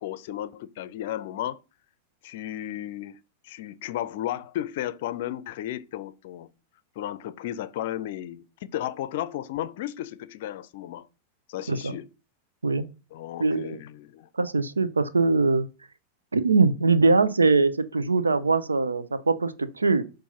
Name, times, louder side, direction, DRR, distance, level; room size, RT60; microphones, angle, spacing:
voice 1, 0.0-1.6 2.2-3.2 3.4-6.5 7.0-11.1 11.5-12.1 13.1-14.3, left 12 dB, 50° left, 0.5 m, -34 dB
voice 2, 13.4-13.8 14.4-15.7 16.3-20.0, right 3 dB, 75° right, 0.6 m, -22 dB
7.0 x 2.6 x 5.5 m
figure-of-eight pair, 90°, 0 cm